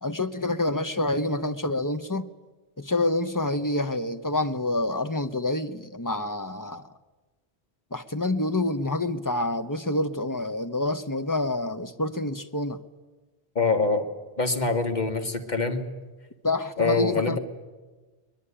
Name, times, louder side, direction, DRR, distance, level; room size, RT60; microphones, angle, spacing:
voice 1, 0.0-2.3 2.8-6.9 7.9-12.8 16.4-17.4, left 2 dB, 20° left, 10 dB, 0.9 m, -27 dB
voice 2, 13.6-14.1 14.4-15.8 16.8-17.4, left 3 dB, 45° left, 6 dB, 2.1 m, -24 dB
21.5 x 21.0 x 10.0 m, 1.3 s
omnidirectional pair, 1.1 m